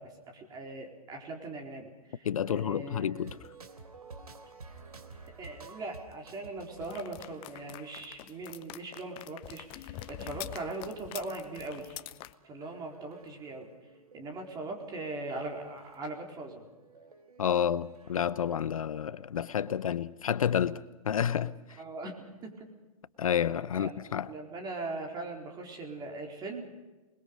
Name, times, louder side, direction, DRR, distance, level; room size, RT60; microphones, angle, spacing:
voice 1, 0.0-3.1 5.4-12.0 12.4-13.7 14.1-16.7 21.7-22.7 23.5-23.9 24.3-26.6, right 2 dB, 20° right, 4.2 m, -40 dB
voice 2, 2.2-3.3 17.4-21.5 23.2-24.3, left 9 dB, 65° left, 0.8 m, -30 dB
sound 1, 3.1-18.9, right 4 dB, 80° right, 3.2 m, -54 dB
sound 2, 6.8-12.3, left 14 dB, 30° left, 0.8 m, -45 dB
27.0 x 21.0 x 5.3 m
figure-of-eight pair, 120°, 19 cm